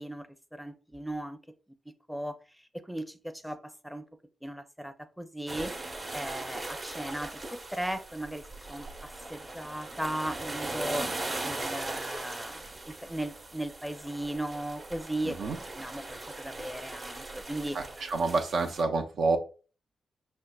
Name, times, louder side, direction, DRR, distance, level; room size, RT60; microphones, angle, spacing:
voice 1, 0.0-1.4 1.9-4.1 4.4-5.7 6.1-11.1 11.4-15.4 15.7-17.8, right 1 dB, ahead, 9 dB, 0.5 m, -37 dB
sound 1, 5.5-18.8, right 2 dB, 40° right, 1.0 m, -39 dB
voice 2, 17.7-19.4, right 3 dB, 70° right, 4 dB, 0.5 m, -28 dB
5.2 x 2.1 x 2.3 m, 0.37 s
hypercardioid pair, 40°, 0 cm